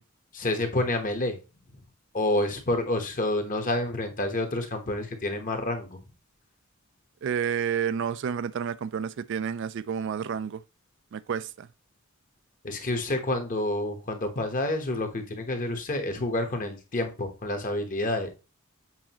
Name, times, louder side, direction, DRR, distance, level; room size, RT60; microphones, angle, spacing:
voice 1, 0.3-1.4 2.1-6.0 12.6-18.3, left 1 dB, 40° left, 1.1 m, -28 dB
voice 2, 7.2-10.6 11.1-11.7, right 7 dB, 60° right, 0.3 m, -30 dB
7.4 x 5.0 x 2.9 m
head